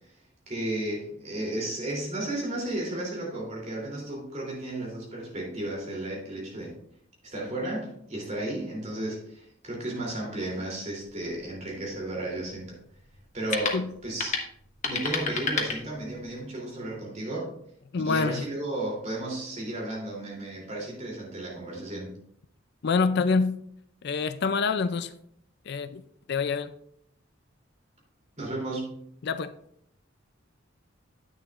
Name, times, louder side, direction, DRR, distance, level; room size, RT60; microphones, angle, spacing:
voice 1, 0.5-6.7 7.2-12.8 13.3-14.4 14.8-17.5 18.0-22.1 28.4-29.0, right 1 dB, 35° right, 3.1 m, -33 dB
sound 1, 11.0-16.4, left 4 dB, 40° left, 1.3 m, -34 dB
voice 2, 17.9-18.5 22.8-23.6 24.0-25.1 25.7-26.0 26.3-26.8 29.2-29.5, left 4 dB, 60° left, 0.4 m, -26 dB
9.8 x 9.1 x 2.5 m
head